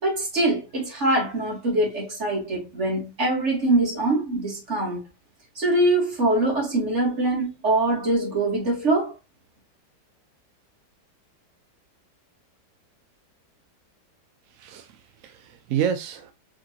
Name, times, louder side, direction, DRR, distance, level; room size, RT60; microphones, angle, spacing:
voice 1, 0.0-5.0 5.6-9.1, right 2 dB, 40° right, 2.5 m, -23 dB
voice 2, 14.5-16.3, right 8 dB, 70° right, 0.8 m, -29 dB
5.1 x 3.6 x 2.9 m
omnidirectional pair, 1.8 m